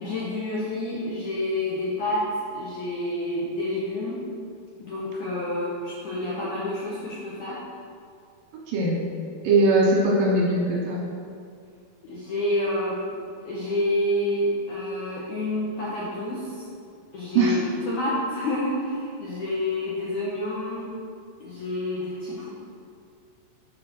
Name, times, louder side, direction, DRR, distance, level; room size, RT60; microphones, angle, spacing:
voice 1, 0.0-2.3 2.5-4.2 4.8-7.6 12.0-16.6 17.1-20.9 21.4-22.5, left 1 dB, 75° left, -7 dB, 1.9 m, -28 dB
voice 2, 9.4-11.0 17.4-17.6, right 2 dB, 70° right, -4 dB, 2.5 m, -20 dB
7.3 x 4.4 x 5.9 m, 2.3 s
omnidirectional pair, 4.8 m